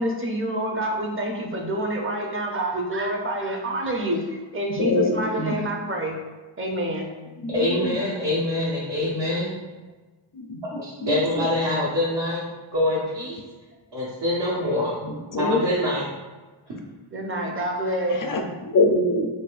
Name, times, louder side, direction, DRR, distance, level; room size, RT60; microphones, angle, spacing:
voice 1, 0.0-6.1 6.6-7.1 17.1-18.2, right 1 dB, 25° right, 0 dB, 0.6 m, -27 dB
voice 2, 4.8-5.7 7.4-8.0 10.3-11.5 15.0-15.6 18.1-19.3, left 2 dB, 45° left, 3 dB, 0.5 m, -25 dB
voice 3, 7.5-9.5 10.7-12.4 12.7-13.4 13.9-14.9 15.4-16.1, left 1 dB, 60° right, -8 dB, 0.8 m, -25 dB
4.1 x 2.2 x 2.4 m, 1.2 s
wide cardioid pair, 45°, 48 cm